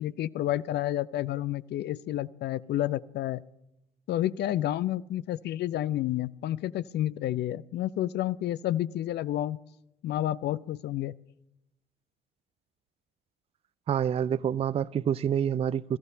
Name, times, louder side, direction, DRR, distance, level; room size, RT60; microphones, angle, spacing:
voice 1, 0.0-3.4 4.1-9.6 10.0-11.1, left 13 dB, 55° left, 0.5 m, -30 dB
voice 2, 13.9-16.0, right 8 dB, 30° right, 0.4 m, -27 dB
22.5 x 14.5 x 2.7 m
hypercardioid pair, 50°, 21 cm